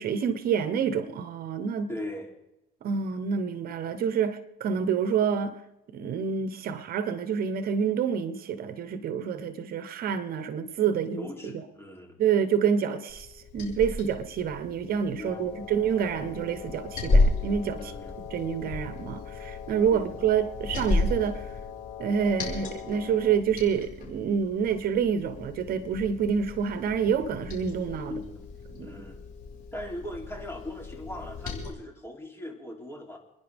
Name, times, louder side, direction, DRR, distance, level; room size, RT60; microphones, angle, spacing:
voice 1, 0.0-1.9 2.8-5.6 5.9-11.6 12.2-17.9 18.3-21.5 22.0-28.2 28.7-29.0, right 7 dB, 60° right, 1.1 m, -28 dB
voice 2, 1.9-2.3 11.1-12.2 15.2-15.6 17.8-18.2 19.9-20.1 28.0-28.5 28.8-29.3 29.7-33.2, left 1 dB, 15° left, 3.3 m, -39 dB
Liquid, 13.1-31.7, left 2 dB, 55° left, 5.3 m, -33 dB
Wind instrument woodwind instrument, 15.1-23.5, left 10 dB, 85° left, 2.9 m, -43 dB
29.0 x 10.5 x 3.6 m
cardioid pair, 110°, 17 cm